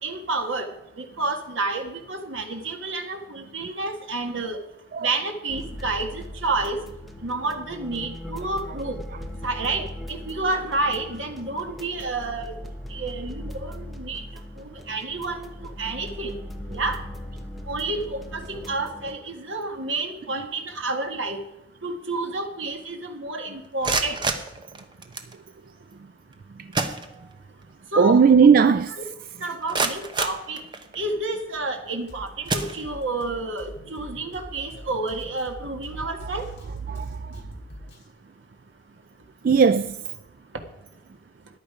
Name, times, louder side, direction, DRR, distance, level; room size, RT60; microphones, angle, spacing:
voice 1, 0.0-4.6 5.0-6.8 7.2-9.0 9.4-12.5 12.9-14.3 14.6-16.4 16.7-17.0 17.7-21.4 21.8-24.2 27.9-28.2 28.7-29.1 29.4-30.6 30.9-36.5, right 2 dB, 85° right, 1.7 m, -30 dB
sound 1, 5.5-19.1, left 1 dB, ahead, 1.0 m, -39 dB
sound 2, 23.6-25.4 26.3-26.4 26.7-27.6 28.0-28.1 28.6-28.7 29.3-31.1 31.8-32.0 32.4-33.3, right 3 dB, 25° right, 1.0 m, -29 dB
voice 2, 28.0-28.9 36.9-37.4 39.4-40.1, right 6 dB, 50° right, 0.3 m, -17 dB
Drum kit, 32.1-38.1, equal, 65° left, 3.1 m, -44 dB
14.0 x 10.5 x 4.9 m
head